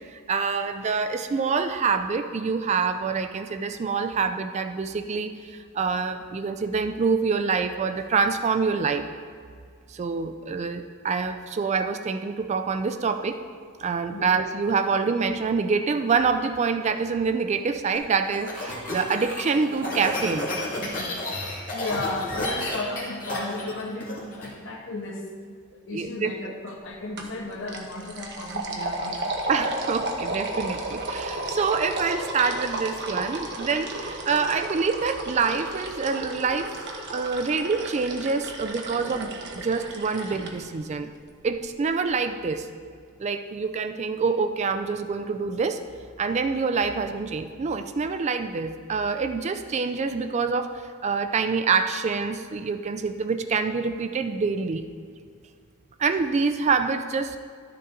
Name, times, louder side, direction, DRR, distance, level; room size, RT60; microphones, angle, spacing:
voice 1, 0.1-9.1 9.9-13.4 13.8-20.5 25.9-26.5 29.5-36.7 37.1-41.1 41.4-42.7 43.2-45.8 46.2-54.8 56.0-57.4, right 5 dB, 30° right, 9 dB, 0.3 m, -26 dB
sound 1, 17.9-24.5, left 1 dB, 40° left, 2.1 m, -31 dB
voice 2, 21.7-25.2 25.9-29.2, left 2 dB, 55° left, 1 dB, 1.2 m, -34 dB
sound 2, 27.2-27.4 27.7-40.5, right 2 dB, 50° right, 1.0 m, -33 dB
12.0 x 6.7 x 3.8 m, 2.1 s
head